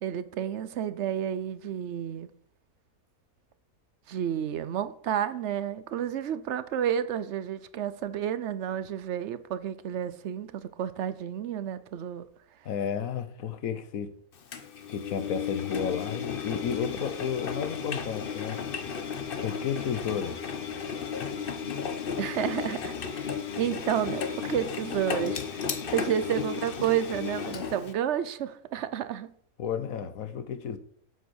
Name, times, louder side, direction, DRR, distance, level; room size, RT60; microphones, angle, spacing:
voice 1, 0.0-2.3 4.1-12.3 22.2-25.7 25.9-29.3, right 9 dB, 60° right, 0.9 m, -31 dB
voice 2, 12.6-14.1 14.9-18.6 19.4-20.4 29.6-30.8, left 7 dB, 70° left, 1.4 m, -32 dB
Engine, 14.5-27.9, left 6 dB, 45° left, 0.9 m, -34 dB
8.0 x 7.9 x 6.3 m
omnidirectional pair, 1.5 m